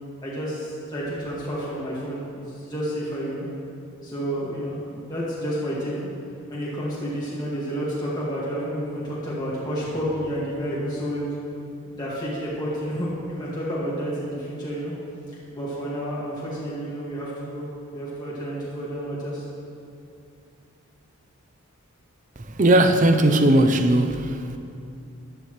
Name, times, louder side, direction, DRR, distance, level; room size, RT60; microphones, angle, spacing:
voice 1, 0.2-3.5 4.0-6.1 6.5-11.3 11.8-14.9 15.5-17.6 17.9-19.5, equal, 20° left, -8 dB, 2.0 m, -30 dB
voice 2, 22.6-24.3, right 1 dB, 35° right, 7 dB, 0.6 m, -17 dB
13.5 x 11.5 x 3.2 m, 2.6 s
head